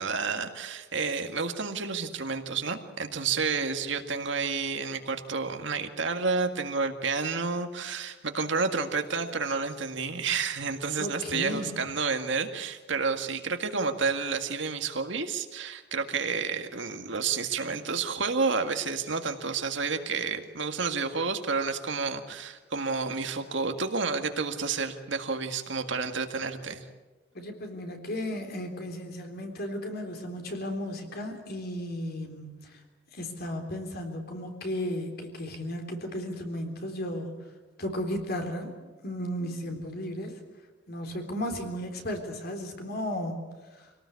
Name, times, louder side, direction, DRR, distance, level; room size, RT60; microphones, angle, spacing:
voice 1, 0.0-26.9, right 4 dB, 65° right, 6 dB, 1.9 m, -30 dB
voice 2, 11.0-11.8 27.3-32.8 33.1-37.4 37.8-38.7 39.0-40.4 40.9-43.5 43.8-43.9, left 1 dB, 50° left, 4 dB, 3.7 m, -34 dB
25.5 x 18.5 x 8.4 m, 1.2 s
head